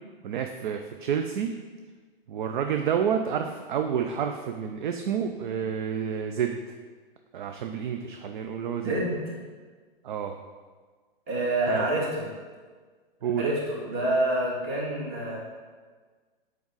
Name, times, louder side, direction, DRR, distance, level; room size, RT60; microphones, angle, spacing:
voice 1, 0.2-1.6 2.3-6.6 7.3-8.9 10.0-10.4 11.7-11.8 13.2-13.5, right 8 dB, 55° right, 6 dB, 0.5 m, -29 dB
voice 2, 8.8-9.2 11.3-12.3 13.4-15.4, right 1 dB, 30° right, -4 dB, 2.1 m, -27 dB
6.9 x 4.7 x 3.9 m, 1.5 s
figure-of-eight pair, 115°, 29 cm